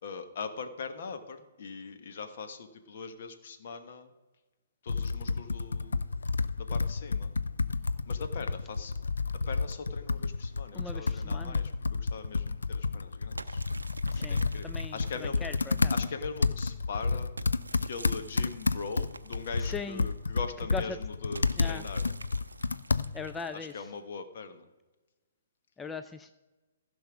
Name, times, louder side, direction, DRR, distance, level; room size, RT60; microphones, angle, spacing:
voice 1, 0.0-4.1 4.8-6.0 6.6-7.3 8.1-8.9 9.3-13.6 14.3-15.5 15.9-17.3 17.8-22.0 23.5-24.7, left 5 dB, 50° left, 7 dB, 1.2 m, -41 dB
Computer keyboard, 4.9-23.4, left 4 dB, 70° left, 0.4 m, -31 dB
voice 2, 10.7-11.6 14.1-14.9 15.2-15.9 19.6-20.0 20.7-21.0 21.6-21.8 23.1-23.7 25.8-26.3, left 4 dB, 10° left, 9 dB, 0.4 m, -39 dB
sound 1, 13.4-16.3 17.4-20.4 21.3-24.0, right 3 dB, 80° right, 0.5 m, -48 dB
15.0 x 5.5 x 6.1 m, 1.2 s
figure-of-eight pair, 125°, 0 cm